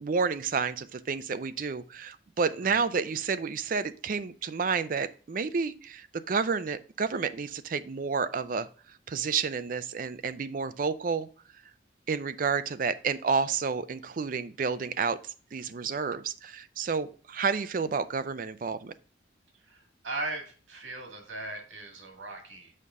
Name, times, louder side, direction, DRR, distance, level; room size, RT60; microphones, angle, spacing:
voice 1, 0.0-8.7 9.1-11.3 12.1-18.9, right 5 dB, 45° right, 12 dB, 0.4 m, -30 dB
voice 2, 19.5-22.7, right 2 dB, 85° right, 2 dB, 2.0 m, -38 dB
6.5 x 5.4 x 3.6 m, 0.39 s
head